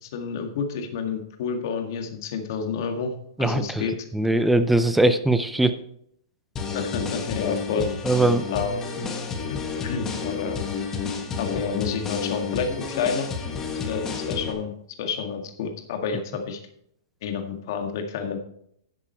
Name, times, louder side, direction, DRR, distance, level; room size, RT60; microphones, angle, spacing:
voice 1, 0.0-3.1 3.4-3.9 6.7-7.9 8.5-8.9 9.8-10.6 11.4-13.3 13.9-16.6 17.2-18.4, left 6 dB, 55° left, 5 dB, 1.8 m, -29 dB
voice 2, 3.4-3.8 4.1-5.8 8.0-8.4, right 2 dB, 5° right, 11 dB, 0.5 m, -20 dB
sound 1, 6.6-14.5, left 5 dB, 15° left, 1.4 m, -30 dB
11.0 x 7.5 x 4.4 m, 0.71 s
hypercardioid pair, 155°, 2 cm